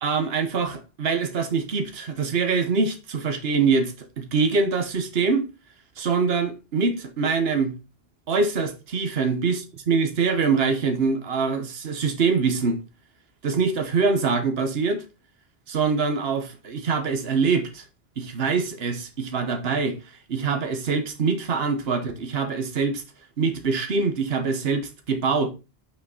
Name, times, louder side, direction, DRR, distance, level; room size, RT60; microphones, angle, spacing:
voice 1, 0.0-5.5 6.0-7.8 8.3-12.8 13.4-15.0 15.7-17.8 18.2-20.0 20.3-23.0 23.4-25.5, right 4 dB, 70° right, 1.3 m, -24 dB
5.9 x 5.7 x 3.9 m
omnidirectional pair, 1.1 m